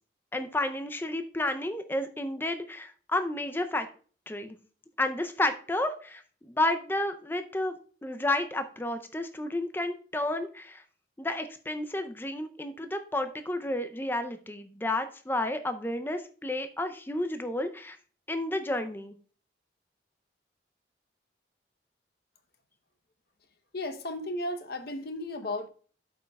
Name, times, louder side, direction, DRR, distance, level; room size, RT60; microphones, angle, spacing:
voice 1, 0.3-3.9 4.3-4.6 5.0-7.7 8.0-10.8 11.2-18.0 18.3-19.1, left 1 dB, 10° left, 0.5 m, -31 dB
voice 2, 23.7-25.7, left 1 dB, 55° left, 0.8 m, -34 dB
12.5 x 5.4 x 2.3 m
head